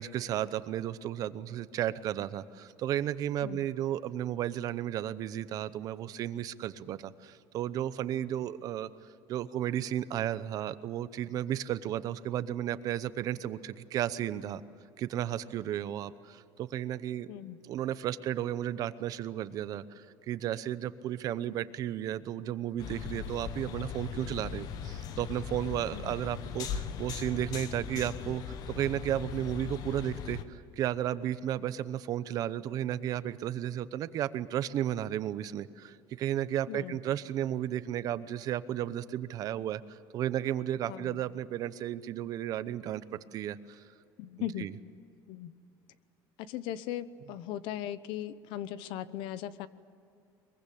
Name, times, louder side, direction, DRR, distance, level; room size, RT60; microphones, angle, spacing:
voice 1, 0.0-8.9 9.3-14.6 15.0-17.3 17.6-43.0 43.3-43.8 44.6-44.7, right 11 dB, 45° right, 14 dB, 0.8 m, -33 dB
voice 2, 17.3-17.6 25.9-26.2 36.7-37.0 40.9-41.2 44.2-44.7 45.3-45.5 46.4-49.7, left 12 dB, 70° left, 15 dB, 0.9 m, -38 dB
sound 1, 22.8-30.4, left 7 dB, 50° left, 1.2 m, -39 dB
23.0 x 22.5 x 8.6 m, 2.6 s
cardioid pair, 175°, 9 cm